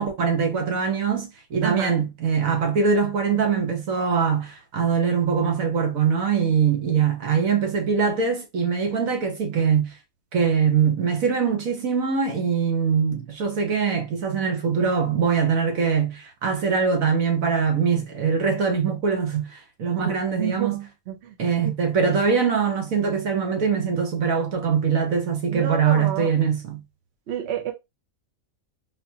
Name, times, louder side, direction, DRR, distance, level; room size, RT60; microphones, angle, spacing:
voice 1, 0.0-9.9 10.3-20.9 21.4-26.8, right 6 dB, 75° right, 1.4 m, -23 dB
voice 2, 1.6-1.9 19.9-20.1 20.4-20.8 21.1-21.2 21.6-21.7 25.5-26.3 27.3-27.7, right 9 dB, 60° right, 0.9 m, -28 dB
3.9 x 2.9 x 2.7 m
omnidirectional pair, 1.4 m